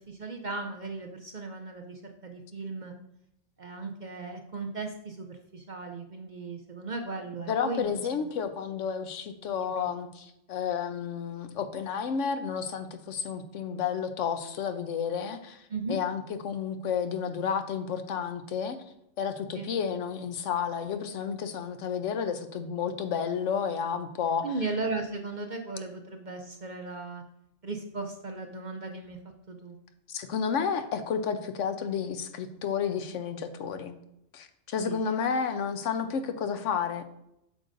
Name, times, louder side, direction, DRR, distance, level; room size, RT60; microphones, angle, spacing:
voice 1, 0.0-2.9 3.6-8.0 9.6-9.9 15.7-16.0 19.5-19.7 24.4-27.2 27.6-29.2 29.5-29.8 34.8-35.2, right 3 dB, 50° right, 4 dB, 0.6 m, -37 dB
voice 2, 7.5-18.8 19.2-24.5 30.1-34.0 34.3-37.0, left 7 dB, 75° left, 8 dB, 1.0 m, -31 dB
8.3 x 6.3 x 2.6 m, 0.79 s
omnidirectional pair, 1.3 m